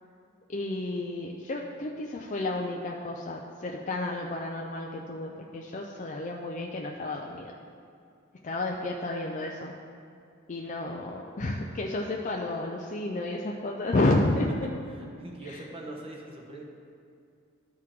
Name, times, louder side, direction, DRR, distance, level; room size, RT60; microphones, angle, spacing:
voice 1, 0.5-7.5 8.4-9.7 10.5-14.5 15.4-15.6, left 2 dB, 35° left, -1 dB, 0.5 m, -31 dB
voice 2, 14.9-16.6, right 1 dB, 25° right, -1 dB, 1.1 m, -42 dB
13.0 x 4.7 x 3.6 m, 2.4 s
head